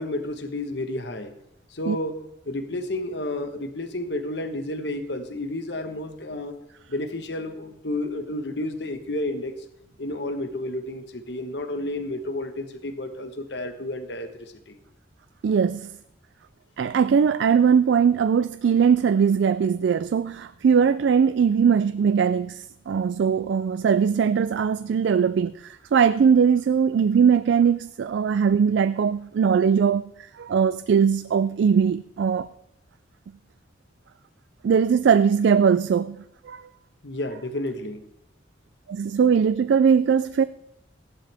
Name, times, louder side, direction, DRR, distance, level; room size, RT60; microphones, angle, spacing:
voice 1, 0.0-1.3 1.7-2.2 2.5-6.5 6.9-9.6 10.0-14.8 37.0-38.0, left 1 dB, 60° left, 1.2 m, -31 dB
voice 2, 15.4-15.9 16.8-30.1 30.4-32.5 34.6-36.2 36.4-36.7 38.9-40.4, right 6 dB, 70° right, 0.3 m, -20 dB
15.0 x 11.0 x 3.5 m
head